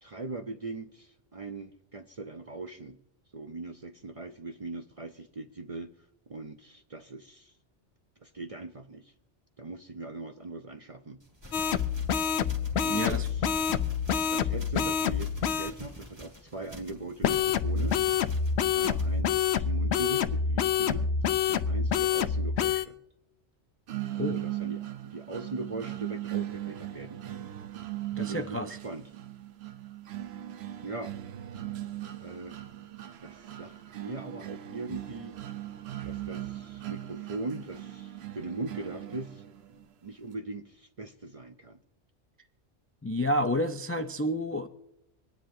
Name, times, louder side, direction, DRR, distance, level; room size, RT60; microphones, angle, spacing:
voice 1, 0.0-3.0 3.3-5.9 6.3-7.5 8.2-9.1 9.6-11.2 12.8-13.7 14.3-18.0 18.7-21.1 21.5-23.0 24.3-27.5 28.1-29.0 30.8-31.1 32.2-32.6 33.2-35.4 36.0-39.5 40.0-41.8, right 3 dB, 45° right, 6 dB, 0.5 m, -40 dB
sound 1, 11.2-19.2, left 1 dB, 25° right, 1.7 m, -48 dB
sound 2, 11.5-15.7 17.2-22.8, left 7 dB, 70° left, 0.9 m, -27 dB
voice 2, 12.9-13.3 24.1-24.4 28.1-28.8 43.0-44.7, equal, 25° left, 7 dB, 0.3 m, -30 dB
sound 3, 23.9-39.8, right 13 dB, 65° right, 0.9 m, -39 dB
25.5 x 10.0 x 2.7 m, 0.86 s
omnidirectional pair, 1.2 m